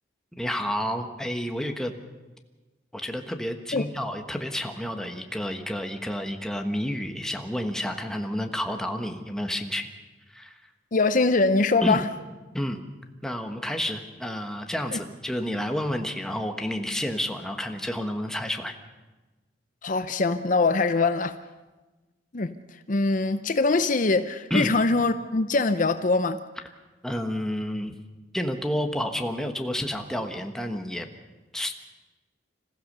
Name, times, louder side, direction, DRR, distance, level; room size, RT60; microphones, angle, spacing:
voice 1, 0.3-1.9 2.9-9.9 10.3-10.5 11.8-12.0 12.5-12.8 13.2-18.8 24.5-24.7 27.0-27.9 28.3-31.1 31.5-31.7, equal, 5° left, 4 dB, 1.4 m, -30 dB
voice 2, 10.9-12.1 14.9-15.0 19.8-21.3 22.3-22.5 22.9-26.4, left 3 dB, 45° left, 10 dB, 0.7 m, -23 dB
26.5 x 15.0 x 6.7 m, 1.2 s
head